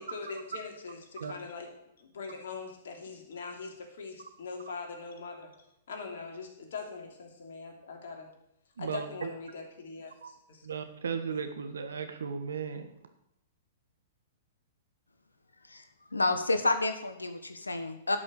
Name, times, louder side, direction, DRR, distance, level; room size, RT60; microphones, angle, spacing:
voice 1, 0.0-1.7 2.0-5.5 5.9-8.3 8.8-10.7, left 4 dB, 65° left, 2 dB, 3.1 m, -42 dB
voice 2, 8.8-9.3 10.2-10.3 10.6-12.9, right 6 dB, 75° right, 8 dB, 1.5 m, -36 dB
voice 3, 16.1-18.2, left 2 dB, 90° left, 8 dB, 1.3 m, -29 dB
11.5 x 6.1 x 8.1 m, 0.80 s
figure-of-eight pair, 110°, 0 cm